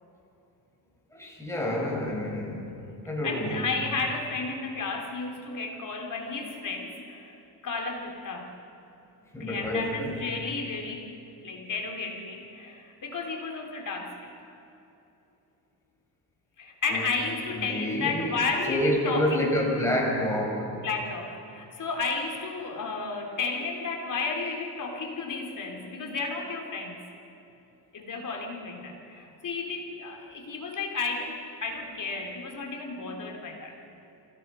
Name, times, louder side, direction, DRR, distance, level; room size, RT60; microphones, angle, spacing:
voice 1, 1.1-2.7 3.1-3.6 9.3-10.2 16.9-17.1 17.5-18.4 18.7-20.8, equal, 5° left, -2 dB, 6.3 m, -28 dB
voice 2, 3.2-8.5 9.4-11.1 11.4-14.3 16.6-19.5 20.6-27.0 27.9-33.7, left 4 dB, 45° left, 2 dB, 3.3 m, -33 dB
27.5 x 17.0 x 5.6 m, 2.8 s
cardioid pair, 95°, 43 cm